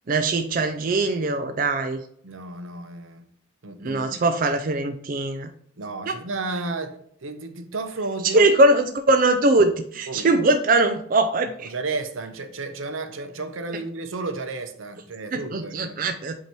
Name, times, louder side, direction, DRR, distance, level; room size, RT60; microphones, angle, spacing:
voice 1, 0.1-2.0 3.8-5.5 6.1-6.2 8.2-11.7 15.3-16.4, right 2 dB, 40° right, 0.4 m, -21 dB
voice 2, 2.2-3.2 3.6-4.3 5.8-8.5 10.1-10.4 11.6-16.0, right 3 dB, 80° right, 0.8 m, -32 dB
8.1 x 2.9 x 4.5 m
head